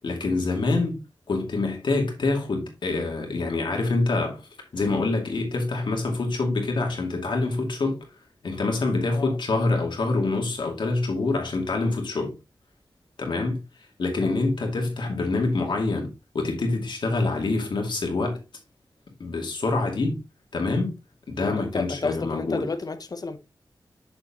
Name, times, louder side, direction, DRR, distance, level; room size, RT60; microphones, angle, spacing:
voice 1, 0.0-1.0 1.3-4.4 4.7-8.0 8.4-12.3 13.2-13.6 14.0-18.4 19.2-20.2 20.5-20.9 21.3-22.6, left 3 dB, 80° left, 2.4 m, -26 dB
voice 2, 21.4-23.4, left 3 dB, 55° left, 0.7 m, -31 dB
6.8 x 6.6 x 2.9 m
cardioid pair, 60°, 8 cm